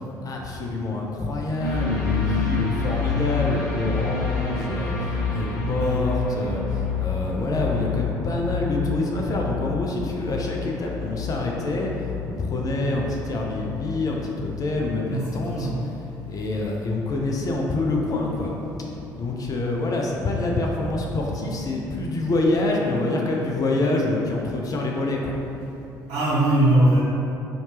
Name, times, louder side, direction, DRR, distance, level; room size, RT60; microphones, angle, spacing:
voice 1, 0.2-15.7 16.2-18.5 19.2-25.3, left 2 dB, 35° left, -1 dB, 0.5 m, -26 dB
sound 1, 1.6-19.4 19.8-19.9, left 5 dB, 55° left, 1.3 m, -30 dB
voice 2, 15.1-15.8 19.8-20.0 20.8-20.9 26.1-27.0, right 1 dB, 55° right, -8 dB, 1.4 m, -21 dB
4.2 x 2.8 x 3.3 m, 2.8 s
figure-of-eight pair, 50°, 10 cm